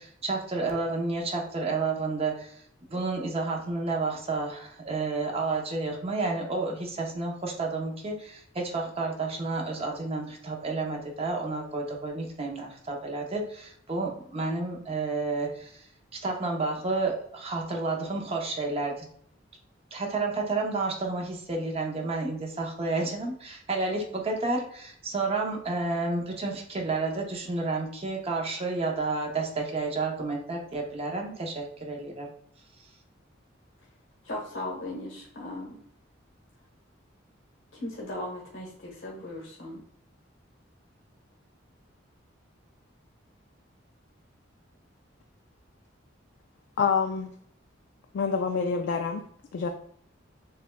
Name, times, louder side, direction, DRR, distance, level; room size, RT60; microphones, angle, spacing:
voice 1, 0.0-2.6 2.9-19.1 19.9-32.3, right 3 dB, 30° right, 1 dB, 0.7 m, -31 dB
voice 2, 34.2-35.8 37.7-39.8, left 1 dB, 80° left, -4 dB, 1.1 m, -37 dB
voice 3, 46.8-47.3 48.1-49.3 49.5-49.7, left 5 dB, 65° left, 4 dB, 0.3 m, -27 dB
6.6 x 2.3 x 2.2 m, 0.63 s
head